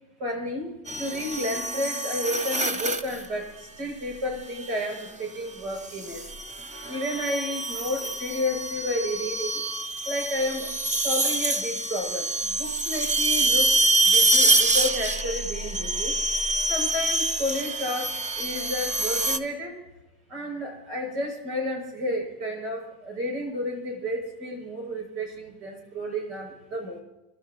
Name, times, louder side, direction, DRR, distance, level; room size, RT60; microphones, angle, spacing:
voice 1, 0.2-6.2 6.9-9.6 10.0-10.7 10.9-13.7 14.0-16.1 16.7-19.8 20.3-27.0, left 1 dB, 75° right, 1 dB, 7.5 m, -31 dB
sound 1, 0.9-3.2 4.6-5.0 5.8-19.4, right 2 dB, 15° right, 0.8 m, -26 dB
29.5 x 12.5 x 3.1 m, 1.0 s
supercardioid pair, 115°, 46 cm